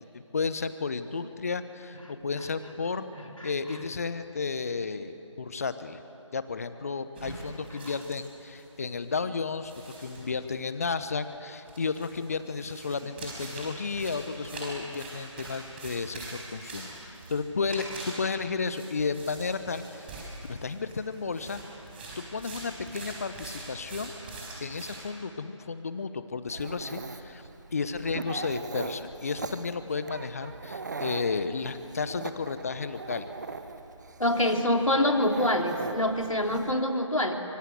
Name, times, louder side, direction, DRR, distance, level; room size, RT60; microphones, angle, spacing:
voice 1, 0.1-3.1 3.4-6.0 6.3-9.7 10.0-20.1 20.5-21.6 22.2-24.1 24.6-27.4 27.7-33.3, left 4 dB, 30° left, 12 dB, 1.0 m, -33 dB
sound 1, 7.2-8.7 9.0-9.1 9.6-10.6 11.7-25.0, right 2 dB, 20° right, 4.8 m, -43 dB
Dog, 26.5-36.7, right 4 dB, 35° right, 1.1 m, -40 dB
voice 2, 34.2-37.3, left 1 dB, 90° left, 3 dB, 3.1 m, -25 dB
25.0 x 24.5 x 8.1 m, 3.0 s
figure-of-eight pair, 160°, 16 cm